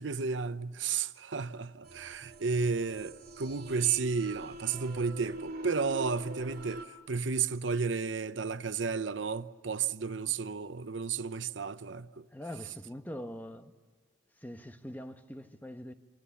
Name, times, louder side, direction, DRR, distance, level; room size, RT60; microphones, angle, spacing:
voice 1, 0.0-12.2, right 5 dB, 80° right, 0.8 m, -32 dB
sound 1, 1.8-6.8, right 2 dB, 50° right, 2.6 m, -44 dB
voice 2, 12.3-13.7 14.4-15.9, equal, 10° left, 1.0 m, -43 dB
27.5 x 26.5 x 7.0 m
head